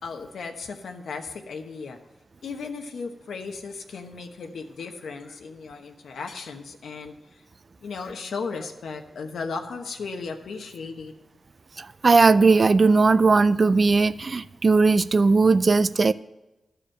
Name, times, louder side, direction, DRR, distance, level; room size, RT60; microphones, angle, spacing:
voice 1, 0.0-2.0 2.4-7.4 7.8-11.1, left 4 dB, 90° left, 1.1 m, -36 dB
voice 2, 11.8-16.1, right 4 dB, 45° right, 0.4 m, -18 dB
13.0 x 4.9 x 7.7 m
wide cardioid pair, 85°, 0 cm